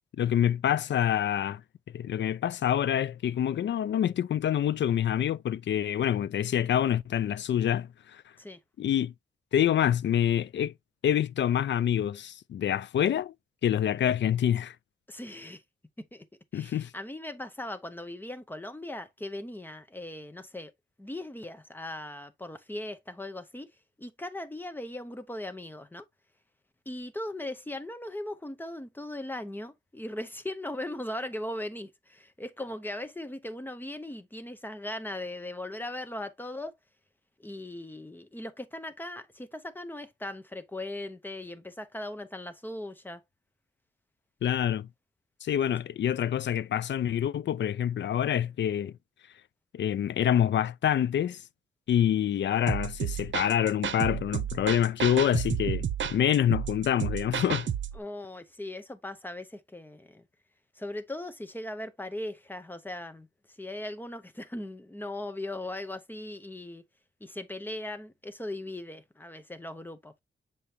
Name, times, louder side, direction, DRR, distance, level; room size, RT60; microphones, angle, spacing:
voice 1, 0.2-1.6 1.9-8.2 8.8-9.1 9.5-10.7 11.0-13.3 13.6-14.7 16.5-16.9 44.4-44.9 45.4-48.9 49.7-51.4 51.9-55.9 56.1-57.7, left 10 dB, 65° left, 0.4 m, -26 dB
voice 2, 15.1-15.6 16.0-16.3 16.5-20.7 21.0-23.7 24.0-26.0 26.9-36.7 37.4-43.2 57.9-60.2 60.7-66.8 67.2-70.2, left 1 dB, 10° left, 0.7 m, -39 dB
sound 1, 52.7-58.0, right 8 dB, 70° right, 0.8 m, -31 dB
7.0 x 5.0 x 2.7 m
wide cardioid pair, 150°, 20 cm